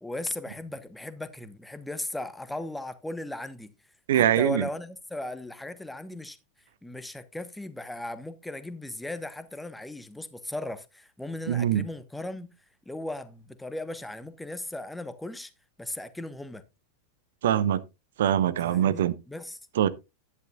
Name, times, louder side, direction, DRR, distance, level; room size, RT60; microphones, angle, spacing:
voice 1, 0.0-3.7 4.1-6.4 6.8-12.5 12.9-15.5 15.8-16.6 18.6-19.6, left 1 dB, 5° left, 1.0 m, -37 dB
voice 2, 4.1-4.7 11.5-11.8 17.4-17.8 18.2-19.1 19.8-19.9, right 10 dB, 60° right, 0.7 m, -23 dB
11.0 x 10.5 x 2.4 m
figure-of-eight pair, 90°, 0 cm